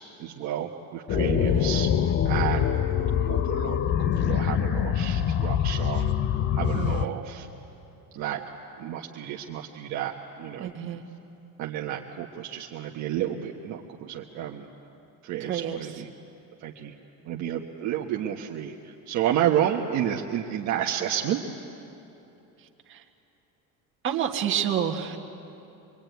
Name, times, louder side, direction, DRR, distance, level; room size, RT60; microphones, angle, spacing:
voice 1, 0.2-1.9 2.2-2.7 3.3-3.8 4.2-6.0 6.6-7.5 8.1-8.4 8.8-10.7 11.6-14.7 15.2-16.1 16.6-16.9 17.2-21.4, right 10 dB, 50° right, 0 dB, 1.3 m, -30 dB
sound 1, 1.1-7.1, left 9 dB, 30° left, 0.5 m, -24 dB
voice 2, 1.4-1.7 6.7-7.1 10.6-11.0 15.4-15.8 22.6-23.0 24.0-25.2, right 9 dB, 35° right, 2 dB, 1.7 m, -29 dB
24.5 x 23.5 x 9.4 m, 2.9 s
cardioid pair, 180°, 35 cm